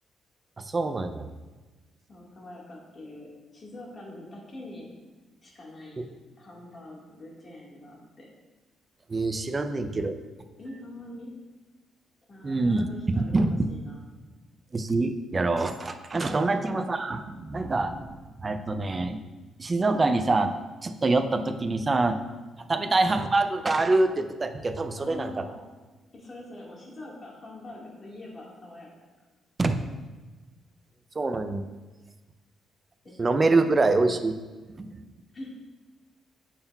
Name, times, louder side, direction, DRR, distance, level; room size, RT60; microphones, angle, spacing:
voice 1, 0.6-1.3 6.0-6.1 9.1-10.1 12.4-12.9 13.2-13.6 14.7-19.2 19.6-20.5 20.8-22.2 22.7-25.3 29.6-29.8 31.2-31.6 33.2-34.4 34.8-35.1, right 3 dB, 25° right, 8 dB, 0.4 m, -25 dB
voice 2, 2.1-4.9 5.4-6.0 6.4-8.3 10.6-11.3 12.3-14.0 16.5-16.8 22.7-23.0 25.0-25.5 26.1-29.1 33.0-33.3 33.6-34.2 35.3-35.5, left 1 dB, 35° left, -3 dB, 1.6 m, -44 dB
8.5 x 5.7 x 2.3 m, 1.2 s
cardioid pair, 125°, 0 cm